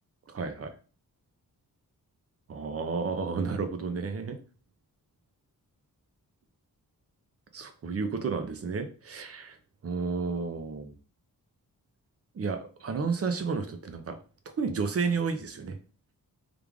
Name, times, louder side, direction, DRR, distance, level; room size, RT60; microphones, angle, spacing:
voice 1, 0.3-0.7 2.5-4.4 7.5-9.6 9.8-10.9 12.3-14.2 14.6-15.8, right 5 dB, 40° right, 7 dB, 0.5 m, -31 dB
3.3 x 2.4 x 3.4 m, 0.36 s
wide cardioid pair, 135°, 37 cm